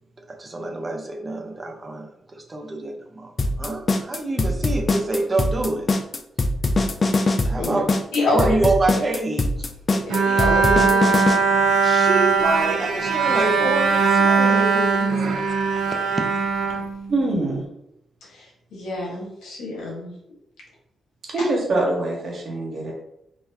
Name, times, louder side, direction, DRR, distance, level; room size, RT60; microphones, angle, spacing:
voice 1, 0.3-3.3 3.6-5.9 7.4-7.9 8.3-9.7 9.9-10.0 11.8-15.3, right 2 dB, 30° right, 3 dB, 0.8 m, -26 dB
sound 1, 3.4-11.4, left 2 dB, 40° left, 0.5 m, -21 dB
voice 2, 8.1-8.6 8.9-9.0 10.2-11.2 15.8-15.9 18.3-20.1, left 2 dB, 85° left, -3 dB, 1.4 m, -26 dB
Bowed string instrument, 10.1-17.5, right 5 dB, 85° right, 0.5 m, -20 dB
voice 3, 17.1-17.6 21.3-22.9, right 2 dB, 60° right, -2 dB, 1.4 m, -24 dB
3.9 x 3.0 x 2.7 m, 0.79 s
cardioid pair, 65°, 0 cm